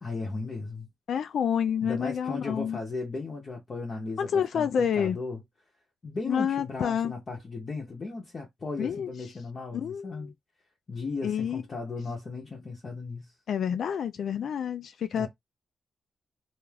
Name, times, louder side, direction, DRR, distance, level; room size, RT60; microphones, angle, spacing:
voice 1, 0.0-0.9 1.8-4.7 5.0-5.4 6.0-10.3 10.9-13.3 15.1-15.3, left 3 dB, 30° left, 0.7 m, -36 dB
voice 2, 1.1-2.8 4.2-5.2 6.3-7.1 8.8-9.1 9.7-10.3 11.2-11.6 13.5-15.3, left 8 dB, 65° left, 0.3 m, -28 dB
2.4 x 2.3 x 3.2 m
wide cardioid pair, 165°, 0 cm